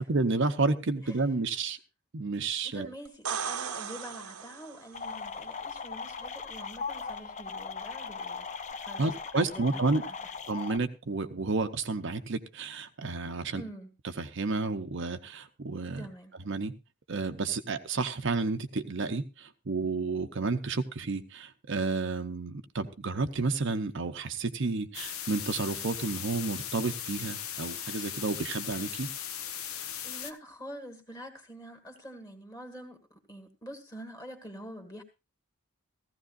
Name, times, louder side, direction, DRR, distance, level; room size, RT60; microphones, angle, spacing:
voice 1, 0.0-1.8 2.1-2.9 9.0-10.0 10.5-13.6 14.0-16.1 16.5-16.7 17.1-29.1, right 3 dB, 55° right, 0.7 m, -31 dB
voice 2, 2.7-8.5 8.7-10.1 13.5-13.9 16.0-16.3 30.0-35.0, equal, 15° left, 1.8 m, -46 dB
sound 1, 3.1-5.0 8.7-8.8, right 7 dB, 80° right, 0.9 m, -36 dB
sound 2, 4.9-10.8, left 5 dB, 30° left, 0.6 m, -39 dB
sound 3, 24.9-30.3, left 9 dB, 70° left, 1.0 m, -38 dB
15.5 x 15.0 x 2.5 m
head